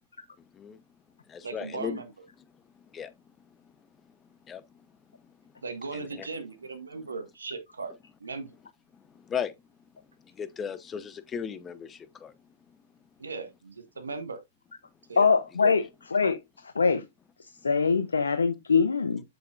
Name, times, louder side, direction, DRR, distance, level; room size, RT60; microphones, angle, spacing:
voice 1, 0.4-0.8 1.3-2.0 2.7-3.1 3.5-3.6 4.4-4.8 5.1-5.2 5.9-6.3 8.9-9.5 10.2-12.3 15.1-15.3 15.6-15.7, left 7 dB, 20° left, 0.9 m, -37 dB
voice 2, 1.4-2.1 5.6-7.9 8.2-8.6 13.2-14.4 15.1-15.2, right 4 dB, 85° right, 1.6 m, -37 dB
voice 3, 15.2-15.8 16.1-16.4 16.8-17.0 17.6-19.2, left 5 dB, 85° left, 0.7 m, -23 dB
8.0 x 6.9 x 2.5 m
hypercardioid pair, 110°, 0 cm